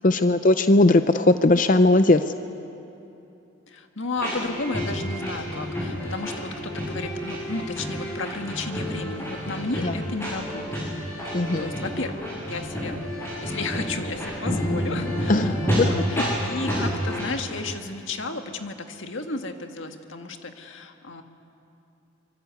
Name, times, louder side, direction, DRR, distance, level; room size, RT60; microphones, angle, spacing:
voice 1, 0.0-2.2 9.8-9.9 11.3-11.7 15.3-15.9 16.2-16.3, left 2 dB, 40° left, 10 dB, 0.6 m, -18 dB
voice 2, 3.7-10.9 11.6-13.0 13.4-21.2, left 3 dB, 70° left, 5 dB, 1.8 m, -33 dB
sound 1, 4.2-17.3, equal, 10° left, 7.6 m, -29 dB
25.5 x 24.5 x 8.3 m, 2.8 s
head